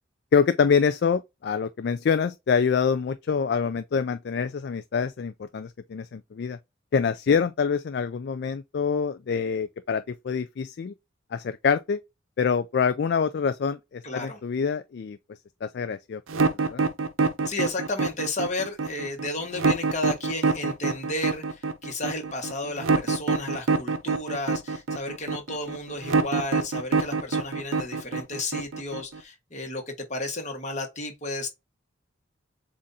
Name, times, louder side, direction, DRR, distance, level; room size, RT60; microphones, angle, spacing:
voice 1, 0.3-6.6 6.9-10.9 11.3-12.0 12.4-15.2 15.6-16.8, left 6 dB, 55° left, 0.3 m, -26 dB
voice 2, 14.0-14.4 17.4-31.5, left 2 dB, 35° left, 1.4 m, -33 dB
sound 1, 16.3-29.2, right 4 dB, 80° right, 0.6 m, -25 dB
7.3 x 2.6 x 2.7 m
head